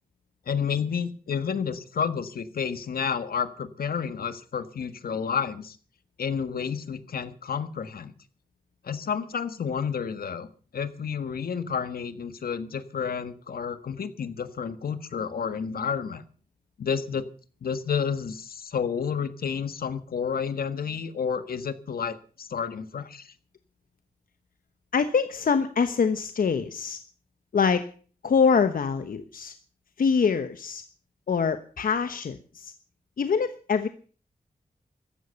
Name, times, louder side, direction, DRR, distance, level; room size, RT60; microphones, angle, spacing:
voice 1, 0.5-5.8 6.2-8.1 8.8-10.5 10.7-16.2 16.8-17.3 17.6-23.3, left 6 dB, 85° left, 11 dB, 1.6 m, -30 dB
voice 2, 24.9-27.0 27.5-27.8 28.2-29.5 30.0-30.8 31.3-32.7 33.2-33.9, left 6 dB, 70° left, 9 dB, 1.1 m, -24 dB
15.0 x 13.0 x 7.0 m, 0.41 s
wide cardioid pair, 135°, 15 cm